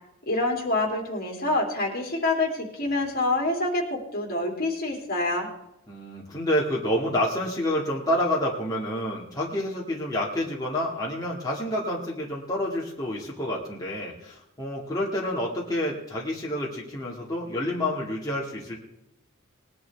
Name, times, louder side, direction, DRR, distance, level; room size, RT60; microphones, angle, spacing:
voice 1, 0.3-5.5, left 2 dB, 50° left, 0 dB, 3.1 m, -26 dB
voice 2, 5.9-18.8, left 1 dB, 20° left, -4 dB, 2.0 m, -28 dB
20.5 x 10.5 x 3.5 m, 0.85 s
head